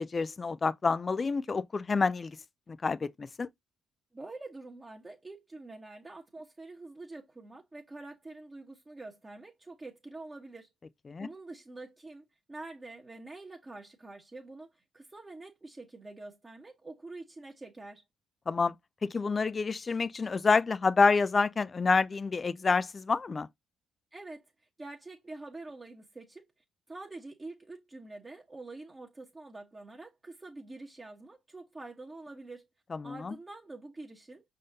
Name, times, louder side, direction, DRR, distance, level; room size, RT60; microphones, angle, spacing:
voice 1, 0.0-2.4 2.8-3.5 11.1-11.3 18.5-18.8 19.0-23.5 32.9-33.3, left 4 dB, 35° left, 0.4 m, -28 dB
voice 2, 4.1-10.7 11.2-18.0 24.1-24.5 24.8-26.4 26.9-32.7 33.0-34.4, right 2 dB, 20° right, 1.2 m, -46 dB
5.2 x 3.7 x 2.6 m
supercardioid pair, 65°, 0 cm